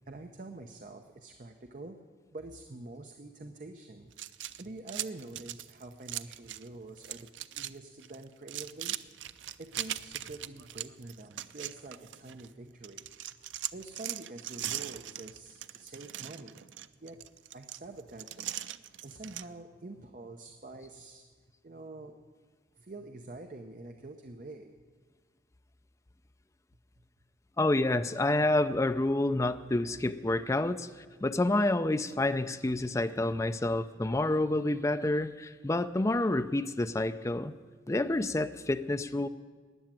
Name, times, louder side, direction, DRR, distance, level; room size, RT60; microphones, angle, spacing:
voice 1, 0.1-2.0 2.3-4.1 4.6-9.0 9.6-13.1 13.7-16.6 17.0-17.3 17.5-18.5 19.0-21.3 21.6-22.2 22.8-24.8, right 2 dB, 45° right, 6 dB, 0.7 m, -46 dB
sound 1, 4.1-6.7 7.0-7.7 8.0-12.5 12.8-19.5, right 12 dB, 90° right, 0.4 m, -40 dB
voice 2, 27.6-37.5 37.9-39.3, left 2 dB, 15° left, 9 dB, 0.4 m, -28 dB
13.5 x 9.4 x 8.9 m, 1.5 s
head